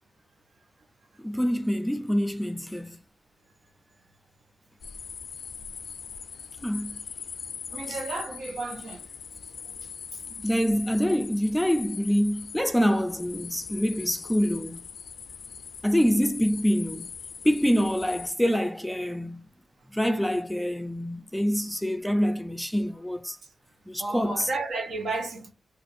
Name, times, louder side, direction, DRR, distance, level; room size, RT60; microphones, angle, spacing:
voice 1, 1.2-3.0 6.6-7.0 7.9-8.0 10.4-14.8 15.8-17.1 17.4-19.5 19.9-23.4 23.9-24.5, equal, 5° left, 0.4 m, -26 dB
sound 1, 4.8-18.3, left 6 dB, 80° left, 0.3 m, -41 dB
voice 2, 7.7-9.0 10.3-10.5 24.0-25.5, right 3 dB, 75° right, 0.9 m, -33 dB
2.5 x 2.4 x 4.1 m
cardioid pair, 95°, 0 cm